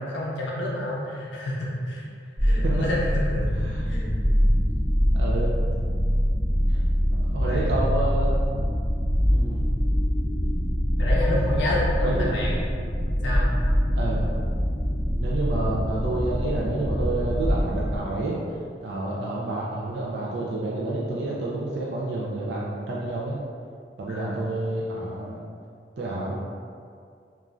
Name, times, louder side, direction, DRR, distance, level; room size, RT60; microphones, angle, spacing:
voice 1, 0.0-2.1 2.4-3.5 3.9-4.1 7.4-7.9 11.0-12.6 13.2-13.5 24.1-24.4, left 1 dB, 85° left, -4 dB, 0.5 m, -29 dB
sound 1, 2.4-18.0, equal, 25° right, 1.1 m, -24 dB
voice 2, 5.1-5.5 7.3-8.3 9.3-9.6 12.0-12.4 14.0-14.3 15.2-18.4 18.8-23.4 24.0-25.4 26.0-26.3, right 2 dB, 70° right, -5 dB, 0.4 m, -29 dB
3.0 x 2.4 x 2.4 m, 2.2 s
head